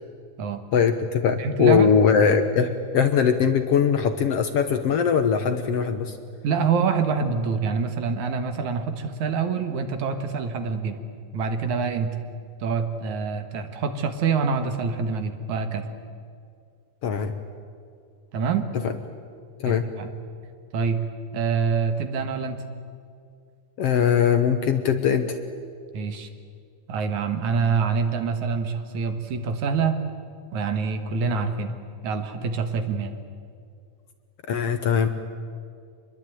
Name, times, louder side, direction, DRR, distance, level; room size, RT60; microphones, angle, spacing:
voice 1, 0.7-6.2 17.0-17.3 18.8-18.9 19.6-19.9 23.8-25.4 34.5-35.1, left 7 dB, 60° left, 8 dB, 1.8 m, -21 dB
voice 2, 1.4-1.9 6.4-11.0 11.3-12.2 12.6-15.9 18.3-18.7 19.6-20.1 20.7-21.0 21.3-22.6 25.9-26.3 26.9-30.0 30.5-31.7 32.0-33.1, right 5 dB, 70° right, 7 dB, 2.9 m, -26 dB
25.5 x 21.5 x 9.2 m, 2.2 s
omnidirectional pair, 3.6 m